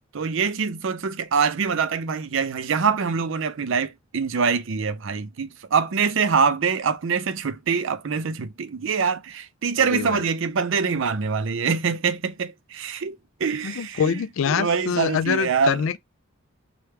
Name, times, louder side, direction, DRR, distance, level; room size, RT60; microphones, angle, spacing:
voice 1, 0.1-14.2 14.5-15.8, right 5 dB, 60° right, 0.5 m, -24 dB
voice 2, 9.8-10.2 13.6-16.0, left 7 dB, 65° left, 0.3 m, -25 dB
3.3 x 2.3 x 4.3 m
head